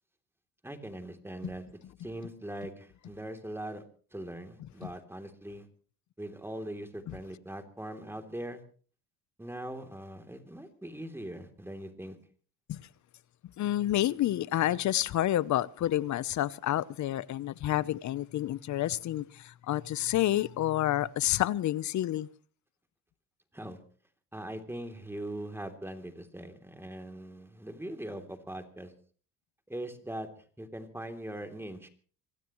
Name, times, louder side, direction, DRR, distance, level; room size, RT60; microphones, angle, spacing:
voice 1, 0.6-1.7 2.0-3.8 4.1-5.7 6.2-8.6 9.4-12.2 23.5-23.8 24.3-28.9 29.7-30.3 30.6-31.9, right 1 dB, 5° right, 3.1 m, -41 dB
voice 2, 13.6-22.3, left 13 dB, 50° left, 0.8 m, -29 dB
25.5 x 16.5 x 3.1 m
supercardioid pair, 95°, 36 cm